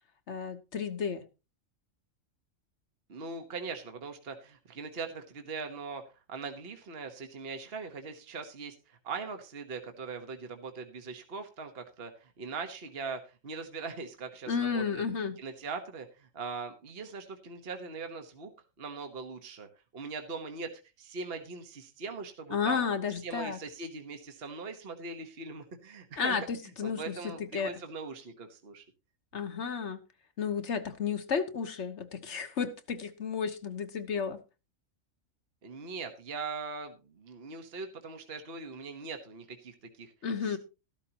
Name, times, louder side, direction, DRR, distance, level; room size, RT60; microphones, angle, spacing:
voice 1, 0.3-1.2 14.5-15.4 22.5-23.6 26.2-27.7 29.3-30.0 30.4-34.4 40.2-40.6, left 6 dB, 60° left, 1.4 m, -32 dB
voice 2, 3.1-6.0 6.3-15.0 15.4-18.5 18.8-19.7 19.9-20.7 21.0-22.8 23.2-26.5 26.8-28.8 35.6-40.1 40.4-40.6, right 4 dB, 50° right, 1.4 m, -41 dB
14.0 x 12.0 x 2.9 m
omnidirectional pair, 1.4 m